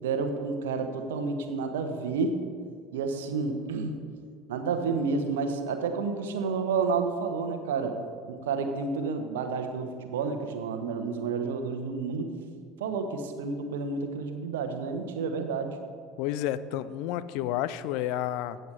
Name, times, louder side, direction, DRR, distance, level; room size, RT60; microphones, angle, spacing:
voice 1, 0.0-2.4 2.9-3.9 4.5-7.9 8.3-12.3 12.8-15.8, right 4 dB, 65° right, 7 dB, 1.0 m, -30 dB
voice 2, 16.2-18.6, left 12 dB, 55° left, 16 dB, 0.4 m, -30 dB
15.0 x 7.9 x 3.3 m, 2.1 s
figure-of-eight pair, 65°, 0 cm